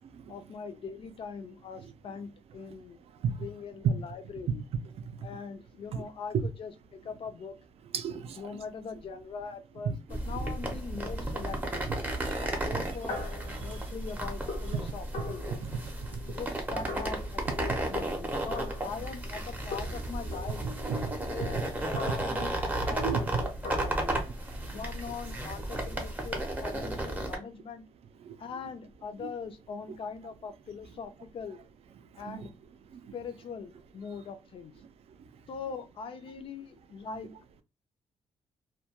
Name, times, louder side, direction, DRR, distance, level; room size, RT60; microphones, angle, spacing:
voice 1, 0.3-3.0 3.4-4.6 5.2-7.6 8.1-11.8 12.4-13.2 13.5-15.6 16.3-20.6 21.3-24.2 24.7-27.8 28.4-31.6 32.2-32.5 33.1-34.7 35.5-37.3, left 5 dB, 55° left, 0.4 m, -41 dB
voice 2, 3.1-3.5 4.5-4.6 4.9-5.3 5.9-6.0 6.3-6.4 7.9-8.6 9.8-10.0 11.9-13.0 13.5-13.9 14.7-14.8 15.6-16.4 20.6-21.6 22.9-23.4 24.5-24.8 28.2-28.4 29.2-29.3 32.1-32.5 32.9-33.1 34.8-35.2, right 6 dB, 65° right, 0.4 m, -36 dB
sound 1, 10.1-27.4, right 1 dB, 15° right, 0.6 m, -34 dB
sound 2, 12.7-19.5 19.7-23.8, left 3 dB, 90° left, 0.9 m, -43 dB
2.2 x 2.2 x 2.8 m
wide cardioid pair, 155°, 11 cm